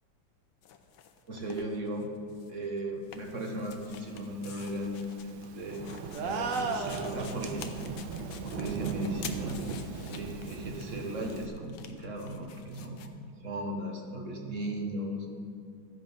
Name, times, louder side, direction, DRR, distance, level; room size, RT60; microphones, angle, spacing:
sound 1, 0.6-2.5 2.8-13.1, left 8 dB, 85° left, 1.5 m, -49 dB
voice 1, 1.3-2.1 2.5-5.8 6.2-7.9 8.4-9.6 10.1-13.1 13.4-15.3, right 1 dB, 45° right, 1 dB, 1.4 m, -36 dB
Thunderstorm / Rain, 3.8-11.5, right 5 dB, 85° right, 1.5 m, -40 dB
sound 2, 6.1-7.7, right 4 dB, 60° right, 0.8 m, -33 dB
13.0 x 7.6 x 5.4 m, 2.3 s
omnidirectional pair, 2.1 m